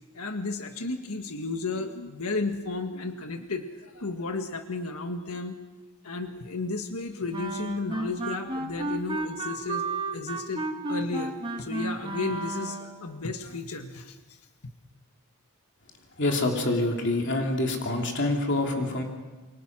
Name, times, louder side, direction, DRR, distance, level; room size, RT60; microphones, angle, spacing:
voice 1, 0.1-5.6 6.0-9.9 10.1-14.4, left 3 dB, 85° left, 6 dB, 1.7 m, -33 dB
Wind instrument woodwind instrument, 7.3-13.1, right 2 dB, 20° right, 2.0 m, -33 dB
voice 2, 16.2-19.0, left 2 dB, 55° left, 1 dB, 3.2 m, -26 dB
28.0 x 24.0 x 6.2 m, 1.2 s
head